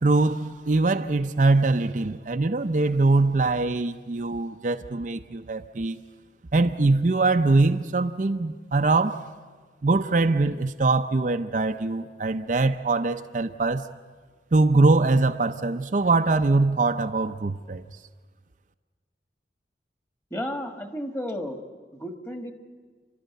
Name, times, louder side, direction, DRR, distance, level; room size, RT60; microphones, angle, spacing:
voice 1, 0.0-6.0 6.5-9.2 9.8-13.9 14.5-17.8, right 3 dB, 45° right, 0.6 m, -22 dB
voice 2, 20.3-21.6 21.9-22.5, equal, 15° left, 1.5 m, -32 dB
30.0 x 12.5 x 9.2 m
head